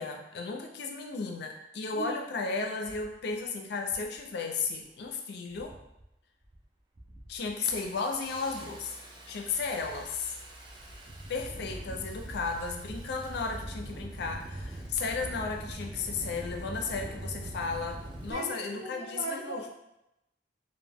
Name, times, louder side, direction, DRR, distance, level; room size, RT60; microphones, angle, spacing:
voice 1, 0.0-5.7 7.3-8.9 9.3-10.4 11.3-19.6, left 4 dB, 65° left, 3 dB, 0.4 m, -34 dB
Engine starting, 2.8-3.1 3.8-4.2 4.5-5.0 5.5-6.0 6.4-6.6 7.0-18.3, right 1 dB, 25° right, 0.4 m, -43 dB
voice 2, 18.3-19.7, right 2 dB, 75° right, -5 dB, 0.7 m, -39 dB
2.1 x 2.1 x 3.3 m, 0.86 s
head